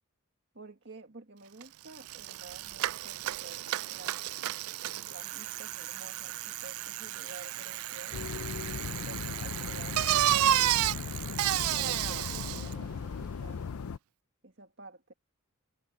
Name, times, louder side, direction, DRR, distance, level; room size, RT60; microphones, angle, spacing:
voice 1, 0.5-4.2 5.1-8.2 9.1-11.2 11.7-13.6 14.4-15.1, right 2 dB, 55° right, 1.8 m, -50 dB
Bicycle, 1.6-1.7 1.9-12.7, right 13 dB, 85° right, 0.4 m, -32 dB
sound 1, 8.1-14.0, left 5 dB, 90° left, 0.5 m, -38 dB
head